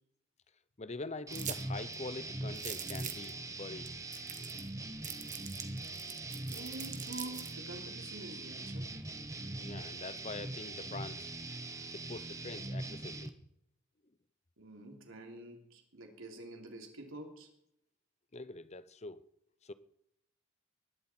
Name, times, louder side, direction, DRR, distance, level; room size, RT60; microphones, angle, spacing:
voice 1, 0.8-3.9 9.6-11.3 12.1-13.3 18.3-19.2 19.6-19.7, left 3 dB, 30° left, 0.7 m, -44 dB
sound 1, 1.3-13.3, right 2 dB, 15° right, 1.0 m, -42 dB
sound 2, 1.3-1.6 1.9-2.0 2.5-3.3 3.9-4.7 5.0-7.5, right 10 dB, 35° right, 1.3 m, -42 dB
voice 2, 6.5-8.9 14.6-17.5, right 2 dB, 70° right, 3.2 m, -47 dB
21.0 x 12.0 x 4.5 m
head